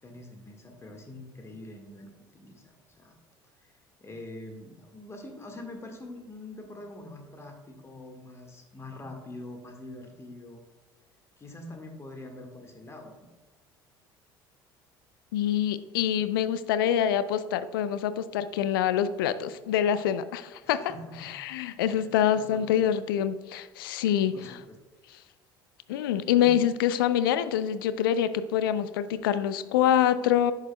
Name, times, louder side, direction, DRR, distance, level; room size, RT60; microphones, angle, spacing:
voice 1, 0.0-2.1 2.3-3.1 3.6-3.7 4.0-10.6 11.4-13.3 20.6-21.3 21.9-22.1 22.3-22.8 24.3-24.7 26.4-26.5, left 2 dB, 20° left, 3 dB, 1.6 m, -44 dB
voice 2, 15.3-20.8 21.2-24.6 25.9-30.5, left 10 dB, 70° left, 15 dB, 0.4 m, -25 dB
10.5 x 6.8 x 2.2 m, 1.3 s
figure-of-eight pair, 60°, 12 cm